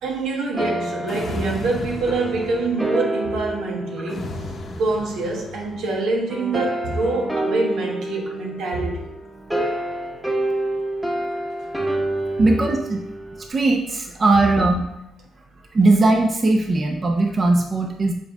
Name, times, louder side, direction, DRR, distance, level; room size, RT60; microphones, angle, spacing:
voice 1, 0.0-4.4 4.8-9.1, right 3 dB, 80° right, 1.3 m, -25 dB
sound 1, 0.5-5.1 6.3-13.5, right 1 dB, 10° right, 1.1 m, -28 dB
sound 2, 1.1-2.9 4.1-5.9, left 2 dB, 50° left, 1.0 m, -34 dB
voice 2, 12.4-13.0 13.5-14.8 15.7-18.1, right 2 dB, 35° right, 0.8 m, -19 dB
7.6 x 3.5 x 3.6 m
cardioid pair, 90°, 0 cm